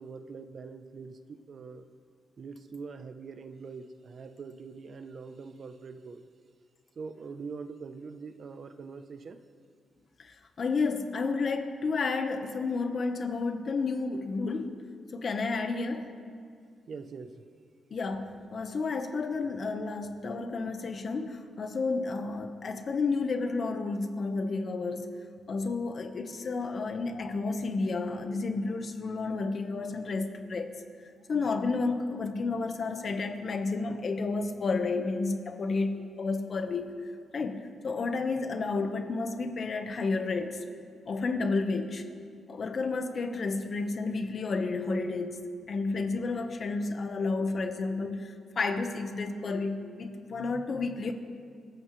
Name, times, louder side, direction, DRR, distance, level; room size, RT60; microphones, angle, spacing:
voice 1, 0.0-1.9 2.4-6.2 7.0-9.4 16.9-17.5, right 4 dB, 50° right, 8 dB, 0.9 m, -43 dB
voice 2, 10.2-14.8 15.1-16.1 17.9-25.1 25.5-30.8 31.3-36.9 37.3-40.7 41.0-42.1 42.5-51.1, left 3 dB, 50° left, 6 dB, 1.3 m, -31 dB
25.5 x 14.5 x 3.3 m, 2.2 s
cardioid pair, 105°, 0 cm